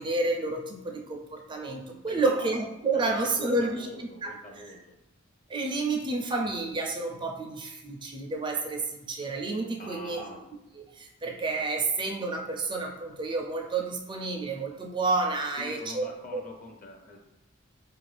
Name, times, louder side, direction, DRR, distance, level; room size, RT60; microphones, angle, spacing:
voice 1, 0.0-4.3 4.6-4.7 5.5-10.2 10.7-16.4, right 3 dB, 25° right, 1 dB, 0.4 m, -30 dB
voice 2, 2.1-2.5 2.9-5.0 9.8-10.4 15.6-17.2, left 1 dB, 40° left, 2 dB, 0.6 m, -44 dB
4.5 x 2.5 x 3.2 m, 0.92 s
head